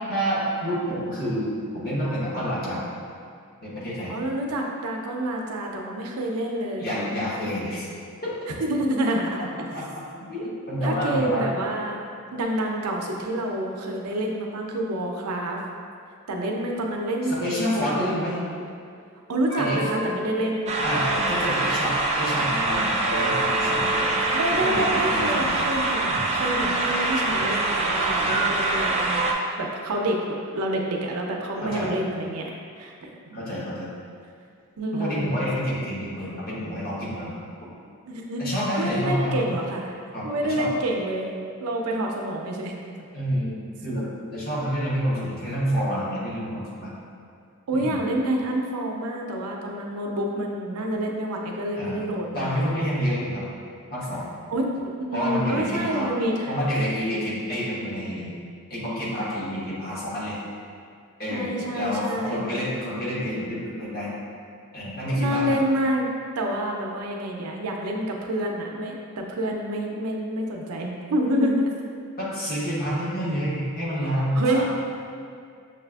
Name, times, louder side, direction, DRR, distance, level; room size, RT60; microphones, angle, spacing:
voice 1, 0.1-2.8 3.6-4.1 6.8-7.9 8.2-8.3 9.4-9.8 10.3-11.5 17.3-18.3 19.6-19.8 20.8-24.1 24.6-25.6 26.1-26.3 27.3-27.5 28.2-28.4 31.6-31.9 33.3-33.9 34.9-37.3 37.6-37.7 38.4-39.5 40.1-40.7 43.1-46.9 47.7-48.0 51.7-52.0 52.3-53.4 53.9-54.3 55.1-56.1 56.5-58.3 58.7-60.4 61.2-64.1 64.7-65.6 72.2-74.6, equal, 45° left, -8 dB, 1.0 m, -28 dB
voice 2, 4.1-6.9 8.5-9.8 10.8-12.1 12.3-15.6 16.3-18.2 19.3-20.7 24.3-29.3 29.6-30.2 30.5-32.5 32.8-33.4 34.8-35.3 38.1-39.9 40.2-41.3 41.6-42.7 47.7-52.7 54.5-56.5 61.3-62.4 65.2-66.1 66.4-71.7 74.3-74.6, right 1 dB, 90° right, 0 dB, 0.5 m, -28 dB
sound 1, 19.5-22.0 23.0-24.9, equal, 70° left, 1.3 m, -34 dB
sound 2, 20.7-29.3, right 2 dB, 30° right, 0.3 m, -24 dB
6.3 x 2.4 x 2.3 m, 2.4 s
head